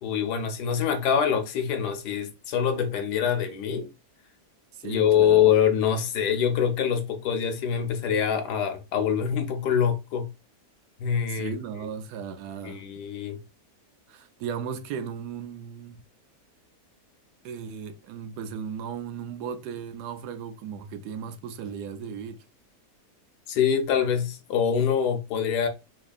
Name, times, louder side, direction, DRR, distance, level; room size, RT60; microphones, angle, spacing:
voice 1, 0.0-3.9 4.8-10.3 11.0-11.6 12.6-13.4 23.5-25.7, left 8 dB, 80° left, 1.3 m, -24 dB
voice 2, 4.7-5.4 11.3-12.8 14.1-16.0 17.4-22.4, right 7 dB, 80° right, 1.1 m, -36 dB
4.2 x 2.8 x 2.3 m
omnidirectional pair, 1.7 m